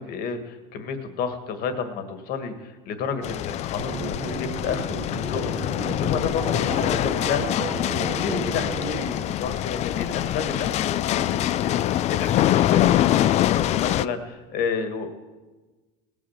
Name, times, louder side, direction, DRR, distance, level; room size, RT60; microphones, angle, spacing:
voice 1, 0.1-15.1, left 6 dB, 55° left, 8 dB, 1.8 m, -31 dB
sound 1, 3.2-14.1, left 13 dB, 35° left, 0.4 m, -24 dB
sound 2, 3.8-9.0, right 6 dB, 55° right, 1.8 m, -34 dB
18.0 x 8.9 x 7.3 m, 1.2 s
cardioid pair, 135°, 19 cm